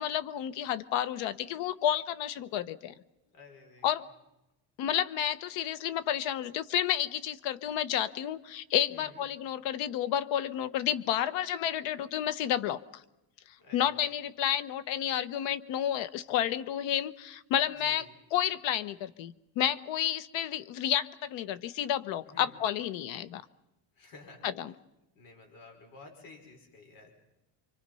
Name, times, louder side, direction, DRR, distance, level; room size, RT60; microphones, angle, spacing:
voice 1, 0.0-2.9 3.8-4.0 4.8-13.0 13.7-23.4 24.4-24.7, left 10 dB, 85° left, 14 dB, 1.2 m, -31 dB
voice 2, 3.3-4.0 8.9-9.3 13.6-14.0 17.8-18.2 22.3-22.6 24.0-24.4 25.2-27.1, left 3 dB, 50° left, 3 dB, 5.6 m, -52 dB
28.5 x 24.5 x 5.6 m, 0.93 s
cardioid pair, 160°, 44 cm